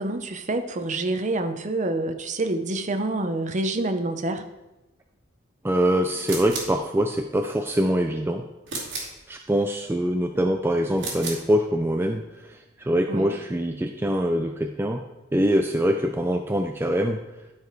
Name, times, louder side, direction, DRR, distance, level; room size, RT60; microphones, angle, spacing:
voice 1, 0.0-4.4 13.1-13.4, right 2 dB, 35° right, 7 dB, 0.7 m, -27 dB
voice 2, 5.6-8.4 9.3-12.6 12.8-15.0 15.3-17.2, equal, 10° right, 4 dB, 0.4 m, -24 dB
sound 1, 6.2-6.8 8.7-9.2 10.9-11.5, right 3 dB, 60° right, 2.5 m, -33 dB
12.0 x 5.0 x 4.6 m, 1.0 s
head